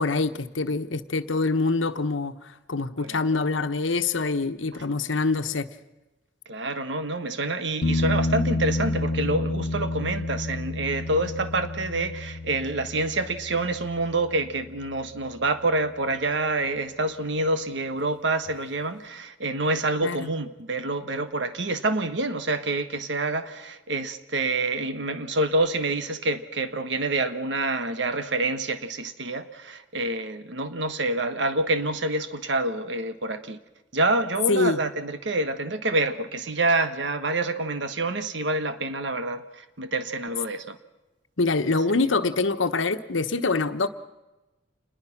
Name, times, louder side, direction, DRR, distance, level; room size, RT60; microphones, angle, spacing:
voice 1, 0.0-5.7 20.0-20.3 34.5-34.8 41.4-43.9, left 3 dB, 85° left, 1.2 m, -25 dB
voice 2, 6.5-33.6 33.9-40.8, right 2 dB, 65° right, 1.3 m, -27 dB
sound 1, 7.8-15.4 18.5-18.6, left 2 dB, 60° left, 0.7 m, -30 dB
27.5 x 21.0 x 6.0 m
head